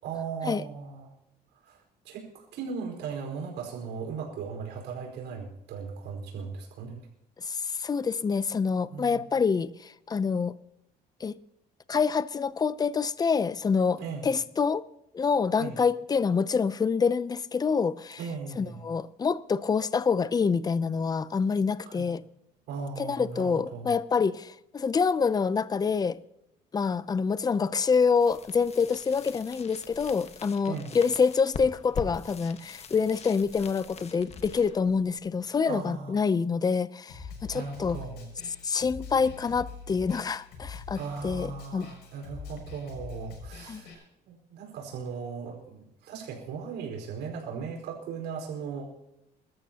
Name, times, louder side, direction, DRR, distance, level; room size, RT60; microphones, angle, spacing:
voice 1, 0.0-1.1 1.6-7.0 8.9-9.2 14.0-14.2 15.5-15.8 18.2-18.9 21.9-22.1 22.7-23.9 30.6-31.0 35.6-36.2 37.5-38.3 40.9-48.9, right 5 dB, 85° right, 4.7 m, -38 dB
voice 2, 7.4-10.5 11.2-11.4 11.9-14.8 15.1-18.2 18.6-22.2 23.0-26.2 26.7-38.0 38.6-41.9 43.7-43.8, left 5 dB, 25° left, 0.6 m, -26 dB
sound 1, 28.1-35.9, left 5 dB, 40° left, 1.4 m, -43 dB
Snare drum, 37.1-43.9, left 4 dB, 80° left, 6.6 m, -43 dB
23.0 x 13.5 x 2.9 m
cardioid pair, 110°, 17 cm